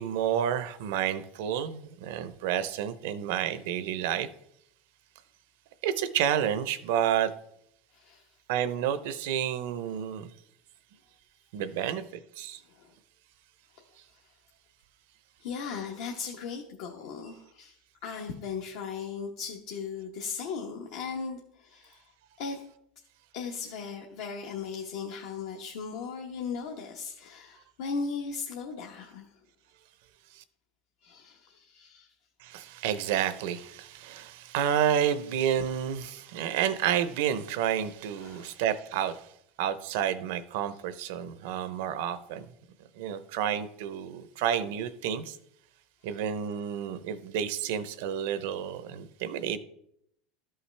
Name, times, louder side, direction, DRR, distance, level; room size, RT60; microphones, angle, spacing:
voice 1, 0.0-4.3 5.8-7.3 8.5-10.3 11.5-12.0 12.4-12.6 30.3-30.4 32.4-39.2 39.6-42.5 43.0-45.4 46.0-49.6, right 9 dB, 75° right, 0.6 m, -30 dB
voice 2, 7.9-8.2 12.7-12.9 15.4-17.8 18.0-22.0 22.4-22.6 23.3-29.3 31.0-32.1 35.5-35.8 38.2-38.5, left 5 dB, 75° left, 1.0 m, -37 dB
13.0 x 5.6 x 3.3 m
supercardioid pair, 150°, 0 cm